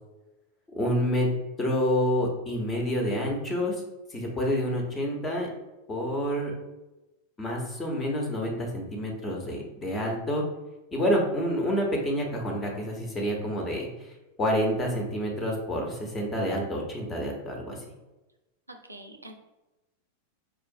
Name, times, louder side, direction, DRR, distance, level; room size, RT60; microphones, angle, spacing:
voice 1, 0.7-1.3 1.6-3.8 4.1-5.5 5.9-6.5 7.4-10.4 10.9-14.1 14.4-17.8, equal, 20° left, 0 dB, 0.9 m, -28 dB
voice 2, 18.7-19.3, right 1 dB, 85° right, 4 dB, 0.4 m, -45 dB
4.8 x 2.4 x 2.7 m, 1.0 s
figure-of-eight pair, 90°, 0 cm